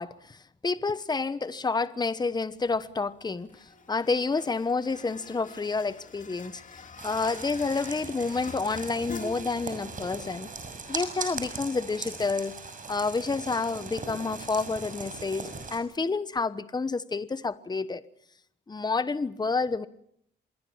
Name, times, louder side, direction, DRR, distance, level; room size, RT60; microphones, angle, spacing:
voice 1, 0.0-6.6 7.0-10.5 10.9-12.5 12.9-18.0 18.7-19.9, left 4 dB, 20° left, 1.1 m, -29 dB
sound 1, 2.5-15.9, left 3 dB, 40° left, 3.2 m, -48 dB
sound 2, 7.0-15.8, right 4 dB, 40° right, 6.4 m, -39 dB
26.0 x 21.0 x 7.3 m
cardioid pair, 90°, 20 cm